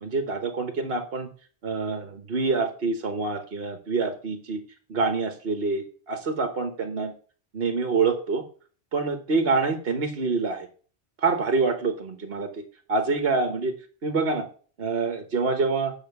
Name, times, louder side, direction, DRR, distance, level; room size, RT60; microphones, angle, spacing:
voice 1, 0.0-1.3 1.6-4.6 4.9-7.1 7.5-8.4 8.9-10.7 11.2-12.6 12.9-13.7 14.0-14.5 14.8-15.9, right 4 dB, 65° right, 6 dB, 1.5 m, -26 dB
8.7 x 6.1 x 7.0 m, 0.41 s
omnidirectional pair, 1.1 m